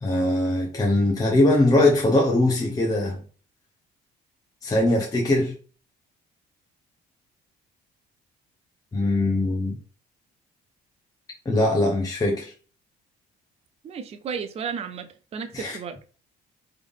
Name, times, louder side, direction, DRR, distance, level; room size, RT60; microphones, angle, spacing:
voice 1, 0.0-3.2 4.6-5.6 8.9-9.8 11.4-12.5 15.5-15.8, left 1 dB, 20° left, 0.8 m, -21 dB
voice 2, 13.8-16.1, right 6 dB, 35° right, 0.5 m, -34 dB
3.5 x 3.4 x 3.6 m
cardioid pair, 110°, 17 cm